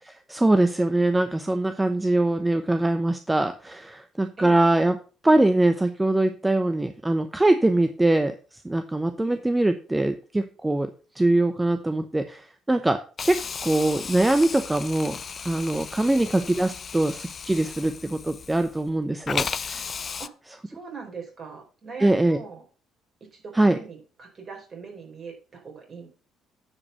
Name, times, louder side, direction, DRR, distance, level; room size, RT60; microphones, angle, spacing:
voice 1, 0.0-5.0 5.2-19.9 22.0-22.4 23.5-23.8, right 2 dB, 15° right, 9 dB, 0.8 m, -23 dB
Hiss, 13.2-18.9 19.3-20.3, left 6 dB, 45° left, 0.4 m, -35 dB
voice 2, 20.6-22.6 23.3-26.1, right 5 dB, 45° right, 2 dB, 4.3 m, -41 dB
9.8 x 5.0 x 5.5 m, 0.37 s
hypercardioid pair, 50°, 0 cm